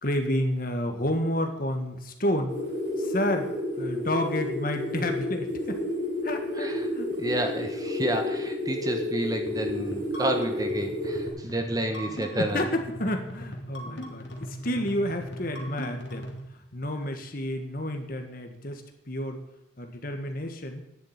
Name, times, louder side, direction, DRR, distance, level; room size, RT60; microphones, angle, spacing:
voice 1, 0.0-2.5 3.0-3.5 3.8-5.8 6.2-7.1 11.9-18.8 19.1-19.4 19.8-20.8, left 1 dB, 45° left, 5 dB, 1.7 m, -30 dB
sound 1, 2.5-11.3, left 1 dB, 65° right, 5.2 m, -31 dB
voice 2, 7.2-12.7, right 1 dB, 20° right, 5 dB, 1.2 m, -30 dB
sound 2, 9.4-16.4, equal, 65° left, 2.4 m, -40 dB
10.5 x 7.7 x 9.4 m, 0.82 s
head